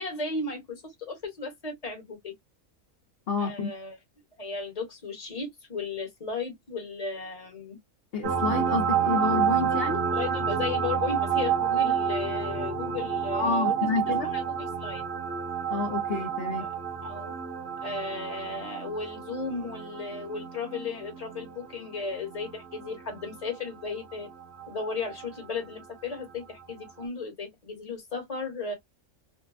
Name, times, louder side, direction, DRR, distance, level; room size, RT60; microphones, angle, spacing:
voice 1, 0.0-2.3 3.4-4.0 4.4-7.8 9.0-9.2 10.1-15.0 16.6-16.7 17.0-17.3 17.8-24.3 24.7-28.7, left 4 dB, 30° left, 1.1 m, -35 dB
voice 2, 3.3-3.7 8.1-10.0 13.3-14.3 15.7-16.7, left 4 dB, 55° left, 0.8 m, -29 dB
sound 1, 8.2-25.5 27.0-27.1, right 7 dB, 60° right, 0.8 m, -30 dB
2.6 x 2.1 x 2.3 m
omnidirectional pair, 1.4 m